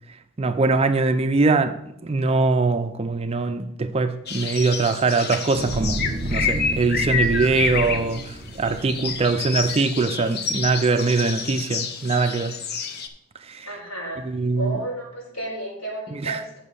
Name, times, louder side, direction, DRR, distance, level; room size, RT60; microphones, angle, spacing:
voice 1, 0.4-6.0 6.3-12.6 13.5-13.7 14.3-14.8 16.2-16.4, right 3 dB, 25° right, 0.4 m, -22 dB
Garden Soundscape, 4.3-13.1, left 5 dB, 45° left, 0.7 m, -29 dB
sound 1, 5.5-10.0 10.5-10.7, right 1 dB, 50° right, 0.8 m, -31 dB
voice 2, 13.7-14.2 14.6-16.6, right 1 dB, 75° left, 4.2 m, -32 dB
8.2 x 6.0 x 5.4 m
head